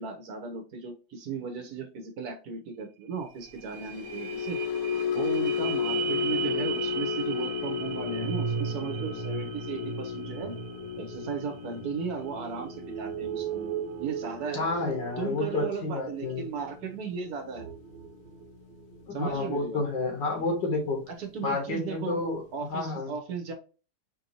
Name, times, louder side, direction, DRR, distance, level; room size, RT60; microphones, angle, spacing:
voice 1, 0.0-4.6 5.1-10.5 11.0-13.7 14.0-14.7 15.2-17.7 19.1-19.8 21.1-22.2 22.5-23.5, right 6 dB, 65° right, 5 dB, 1.2 m, -36 dB
sound 1, 2.8-2.9 3.2-19.1 19.6-19.7, right 10 dB, 90° right, 1.2 m, -37 dB
sound 2, 3.6-19.9 20.3-20.6 20.9-21.2, left 8 dB, 70° left, 1.0 m, -35 dB
voice 2, 14.5-16.5 19.1-21.0 21.4-22.4 22.7-23.1, left 3 dB, 85° left, 1 dB, 2.1 m, -30 dB
4.6 x 2.6 x 2.8 m, 0.34 s
omnidirectional pair, 1.9 m